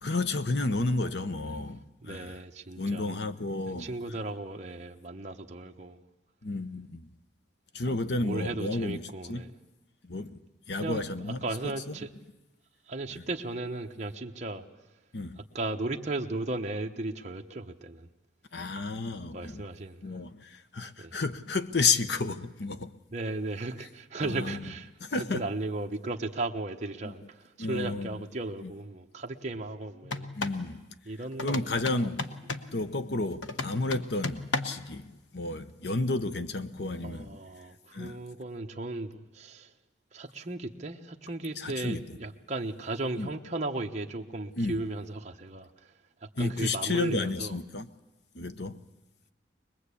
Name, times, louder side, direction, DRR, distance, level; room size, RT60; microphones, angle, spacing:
voice 1, 0.0-2.4 2.8-4.0 6.4-7.1 7.7-9.4 10.0-10.4 10.7-12.0 13.1-13.2 15.1-15.4 18.5-19.6 20.0-22.9 24.2-24.7 25.0-25.5 27.0-27.1 27.6-28.1 28.6-28.7 30.4-30.9 31.4-32.2 32.7-37.4 37.9-38.2 41.6-42.0 43.2-43.3 44.6-44.8 46.4-47.9 48.3-48.8, left 3 dB, 65° left, 0.9 m, -31 dB
voice 2, 2.0-3.1 3.7-6.0 8.2-9.5 10.8-11.0 11.4-12.1 12.9-14.6 15.5-18.1 19.3-20.2 21.0-21.2 23.1-24.9 25.2-30.3 31.1-31.6 31.9-32.1 37.0-39.7 40.1-45.9 46.2-47.6, right 2 dB, 40° right, 1.0 m, -36 dB
sound 1, 30.0-30.6 31.4-32.7 33.4-34.9, left 3 dB, 85° left, 1.1 m, -35 dB
24.0 x 20.5 x 8.4 m
head